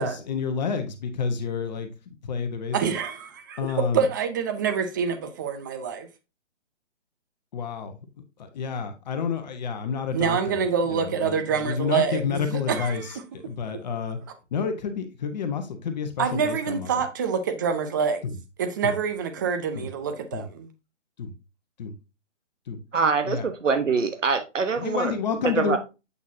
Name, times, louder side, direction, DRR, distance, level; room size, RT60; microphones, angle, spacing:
voice 1, 0.0-1.9 2.2-2.9 3.6-4.1 7.5-8.0 8.4-10.6 10.9-14.2 14.5-16.9 18.2-18.4 18.8-18.9 19.7-19.9 20.3-20.4 21.2-21.3 21.8-21.9 22.7-22.8 23.2-23.5 24.7-25.8, left 6 dB, 35° left, 1.1 m, -29 dB
voice 2, 2.7-6.1 10.1-13.2 16.2-18.2 18.6-20.7, right 6 dB, 15° right, 0.5 m, -26 dB
voice 3, 22.9-25.1 25.6-25.8, right 5 dB, 80° right, 1.2 m, -24 dB
8.3 x 5.8 x 2.7 m
figure-of-eight pair, 145°, 36 cm